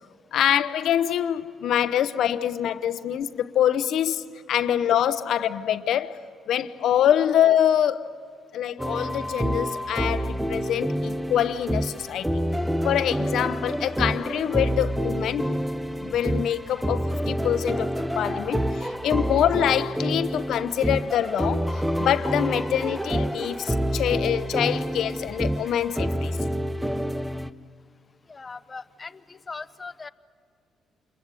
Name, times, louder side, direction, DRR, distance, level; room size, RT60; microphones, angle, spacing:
voice 1, 0.3-6.2 6.5-8.1 8.5-12.4 12.8-15.6 16.0-17.9 18.2-26.4, left 10 dB, 75° left, 0.9 m, -25 dB
sound 1, 8.8-27.5, equal, 5° right, 0.8 m, -28 dB
voice 2, 28.3-30.1, left 4 dB, 30° left, 0.8 m, -39 dB
28.0 x 22.5 x 8.4 m
cardioid pair, 90°, 0 cm